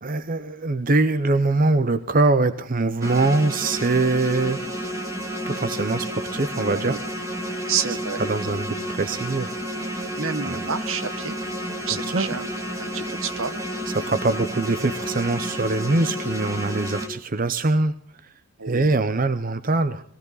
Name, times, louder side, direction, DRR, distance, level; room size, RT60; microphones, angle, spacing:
voice 1, 0.0-4.6 5.5-7.0 8.2-10.1 10.4-10.6 12.1-12.3 13.9-17.9 18.7-20.0, right 2 dB, 40° right, 12 dB, 0.7 m, -23 dB
sound 1, 3.0-17.1, equal, 15° right, 2.6 m, -31 dB
voice 2, 7.7-8.2 10.1-11.4 11.9-12.5 12.8-13.5 18.6-19.1, right 6 dB, 70° right, 12 dB, 1.2 m, -29 dB
19.5 x 16.5 x 4.0 m, 0.62 s
head